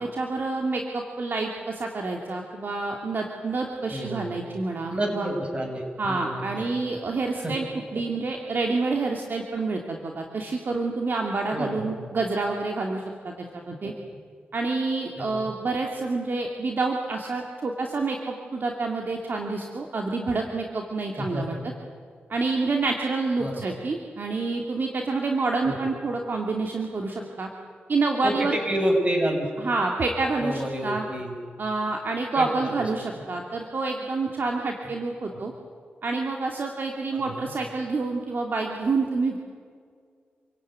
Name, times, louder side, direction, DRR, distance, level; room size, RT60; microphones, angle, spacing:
voice 1, 0.0-5.3 6.0-7.6 7.9-13.9 14.5-21.6 22.3-27.5 27.9-28.6 29.6-31.0 31.6-35.5 36.0-39.4, right 3 dB, 60° right, 2 dB, 2.7 m, -28 dB
voice 2, 3.9-4.4 4.9-6.7 7.4-7.5 11.5-12.0 13.8-13.9 15.2-15.5 21.1-21.6 23.4-23.6 25.6-25.8 28.2-29.5 30.4-31.3 32.4-32.8 37.1-37.4, right 1 dB, 30° right, 2 dB, 7.8 m, -29 dB
28.5 x 17.0 x 9.6 m, 2.1 s
cardioid pair, 65°, 4 cm